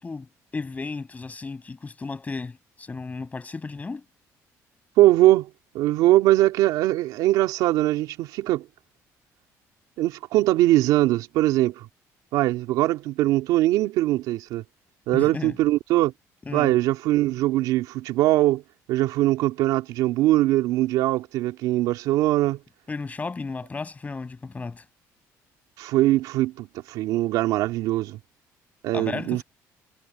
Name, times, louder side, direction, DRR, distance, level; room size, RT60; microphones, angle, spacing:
voice 1, 0.0-4.1 15.1-15.6 16.5-16.7 22.9-24.9 28.9-29.4, left 4 dB, 25° left, 6.9 m, -34 dB
voice 2, 5.0-5.5 5.7-8.7 10.0-11.9 12.3-14.6 15.1-16.1 16.5-18.6 18.9-22.6 25.8-28.2 28.8-29.4, right 16 dB, 85° right, 2.9 m, -21 dB
cardioid pair, 100°, 6 cm